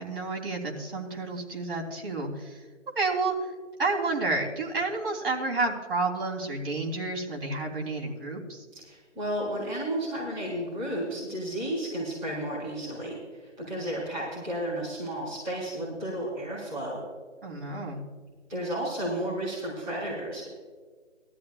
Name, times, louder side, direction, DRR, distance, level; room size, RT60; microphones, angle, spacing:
voice 1, 0.0-2.6 2.9-3.5 3.8-8.6 17.4-18.0, right 3 dB, 50° right, -1 dB, 3.3 m, -30 dB
voice 2, 8.7-17.0 18.5-20.5, right 1 dB, 10° right, -10 dB, 3.1 m, -33 dB
18.5 x 13.5 x 2.4 m, 1.4 s
hypercardioid pair, 175°, 37 cm